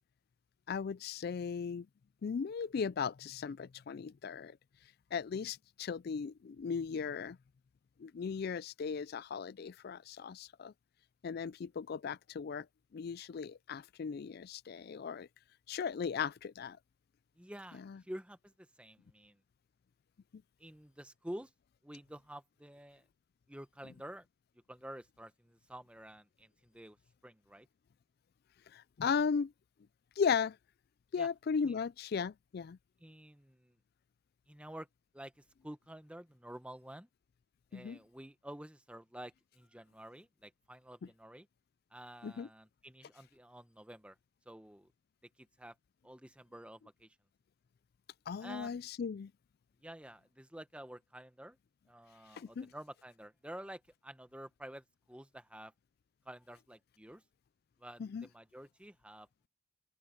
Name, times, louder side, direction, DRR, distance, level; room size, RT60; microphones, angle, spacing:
voice 1, 0.7-1.9 2.2-4.6 5.1-7.4 8.0-10.7 11.2-12.7 12.9-15.3 15.7-16.8 17.8-18.0 28.7-29.5 30.2-30.6 31.1-32.8 37.7-38.0 42.2-42.5 48.3-49.3 52.3-52.7 58.0-58.3, left 6 dB, 45° left, 0.3 m, -37 dB
voice 2, 17.4-19.4 20.6-21.5 21.8-23.0 23.5-24.3 24.7-27.0 27.2-27.7 31.2-31.3 31.6-31.7 33.0-33.8 34.5-34.9 35.1-37.1 37.7-41.5 41.9-44.2 44.5-44.9 45.4-45.7 46.0-47.2 48.4-48.8 49.8-51.6 51.9-55.7 56.2-57.2 57.8-59.5, right 1 dB, 5° right, 0.9 m, -50 dB
open air
head